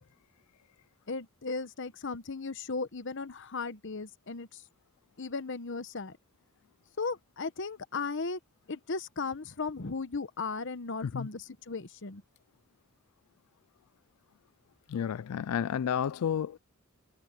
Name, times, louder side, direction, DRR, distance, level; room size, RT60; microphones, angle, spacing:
voice 1, 1.1-4.6 5.2-6.2 7.0-8.4 8.7-12.2, left 4 dB, 60° left, 1.0 m, -36 dB
voice 2, 14.9-16.6, left 8 dB, 85° left, 0.4 m, -31 dB
head